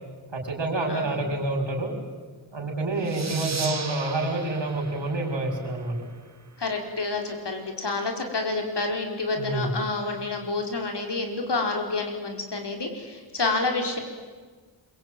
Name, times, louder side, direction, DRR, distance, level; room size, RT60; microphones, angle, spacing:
voice 1, 0.3-1.9 2.5-5.9 9.4-9.7, right 2 dB, 75° right, 2 dB, 6.2 m, -28 dB
voice 2, 0.9-1.2 3.0-3.4 6.6-14.0, left 3 dB, 65° left, 3 dB, 4.9 m, -29 dB
sound 1, 3.0-6.3, right 4 dB, 35° right, 1.5 m, -37 dB
26.5 x 23.5 x 9.2 m, 1.5 s
wide cardioid pair, 90°, 45 cm